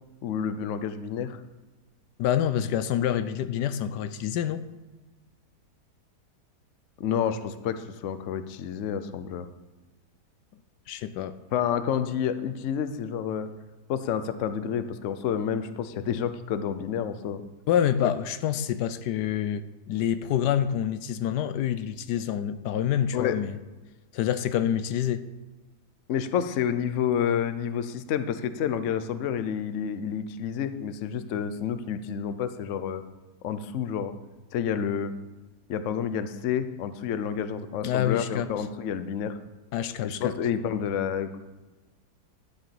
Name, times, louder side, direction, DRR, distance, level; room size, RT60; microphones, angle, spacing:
voice 1, 0.2-1.4 7.0-9.5 11.5-13.5 13.9-17.4 18.0-18.1 23.1-23.4 26.1-33.0 33.4-34.1 34.5-35.1 35.7-39.4 40.0-41.4, left 8 dB, 60° left, 11 dB, 0.9 m, -29 dB
voice 2, 2.2-4.6 10.9-11.4 17.7-23.6 24.1-25.3 37.8-38.5 39.7-40.3, left 10 dB, 80° left, 12 dB, 1.2 m, -27 dB
12.0 x 6.5 x 7.0 m, 1.2 s
omnidirectional pair, 1.8 m